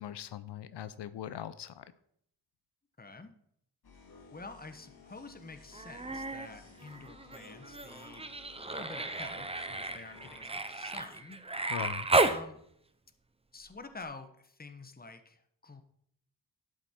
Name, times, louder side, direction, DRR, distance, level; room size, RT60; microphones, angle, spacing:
voice 1, 0.0-1.9 11.7-12.1, left 10 dB, 85° left, 14 dB, 0.6 m, -40 dB
voice 2, 3.0-3.3 4.3-8.3 8.7-11.4 12.2-12.6 13.5-15.8, left 3 dB, 20° left, 8 dB, 1.2 m, -48 dB
sound 1, 3.8-10.5, left 3 dB, 65° left, 2.3 m, -56 dB
Human voice, 5.7-6.5 6.8-12.4 14.0-14.1, right 2 dB, 15° right, 0.7 m, -33 dB
12.0 x 7.9 x 4.4 m, 0.71 s
wide cardioid pair, 90°, 40 cm